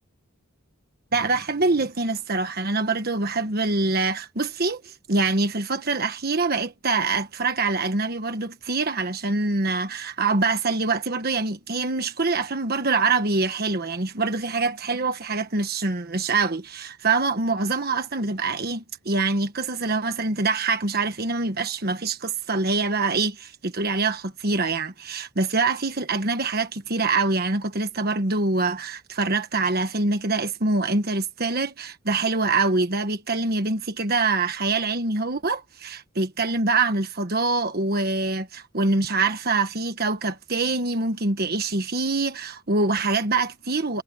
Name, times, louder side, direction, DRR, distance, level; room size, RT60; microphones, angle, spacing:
voice 1, 1.1-44.0, right 3 dB, 45° right, 1.4 m, -25 dB
head